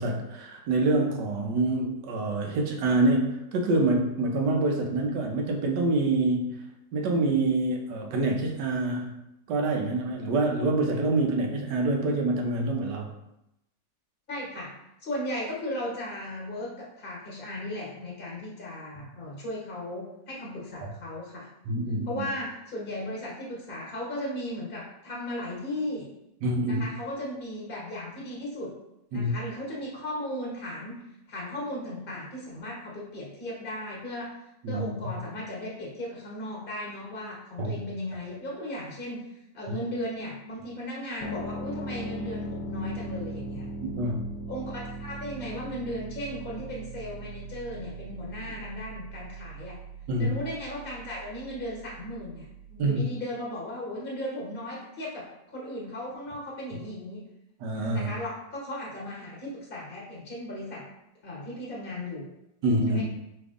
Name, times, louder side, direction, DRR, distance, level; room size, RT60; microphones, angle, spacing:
voice 1, 0.0-6.6 6.9-9.2 9.5-13.1 20.8-20.9 21.7-22.2 26.4-26.9 29.1-29.3 34.6-34.9 37.6-37.8 43.8-44.3 50.1-50.4 52.8-53.0 57.6-58.1 62.6-63.0, right 2 dB, 75° right, 1 dB, 1.3 m, -26 dB
voice 2, 14.3-14.7 15.0-21.5 22.1-26.1 26.7-28.7 29.1-31.0 31.3-34.3 34.7-39.3 39.5-43.7 44.5-49.8 50.2-57.3 57.9-60.8 61.2-62.3 62.9-63.0, left 1 dB, 35° left, -4 dB, 1.3 m, -36 dB
sound 1, 41.2-52.8, right 1 dB, 75° left, 1.3 m, -39 dB
5.0 x 3.4 x 2.4 m, 0.86 s
omnidirectional pair, 1.9 m